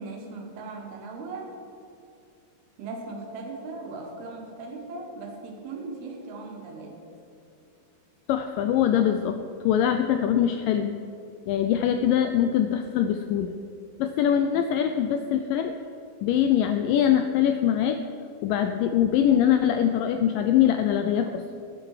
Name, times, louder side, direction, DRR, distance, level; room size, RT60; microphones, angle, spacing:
voice 1, 0.0-1.6 2.8-7.0 14.3-14.6, right 3 dB, 80° right, 1 dB, 3.5 m, -38 dB
voice 2, 8.3-9.4 9.6-11.0 11.5-13.6 14.0-15.8 16.2-18.0 18.4-21.6, left 9 dB, 85° left, 7 dB, 1.9 m, -23 dB
18.5 x 8.8 x 4.9 m, 2.6 s
omnidirectional pair, 4.4 m